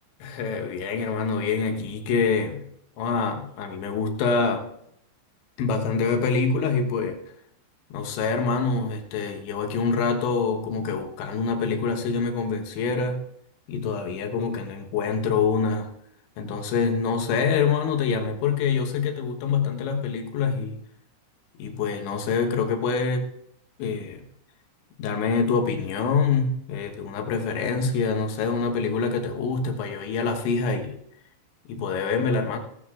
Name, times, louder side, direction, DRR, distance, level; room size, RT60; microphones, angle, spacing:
voice 1, 0.2-2.7 3.0-4.7 5.6-7.2 7.9-13.2 13.7-15.9 16.4-20.8 21.6-23.3 23.8-24.3 25.0-31.0 31.7-32.6, left 5 dB, 80° left, 3 dB, 3.5 m, -25 dB
17.5 x 14.5 x 2.4 m, 0.72 s
omnidirectional pair, 5.3 m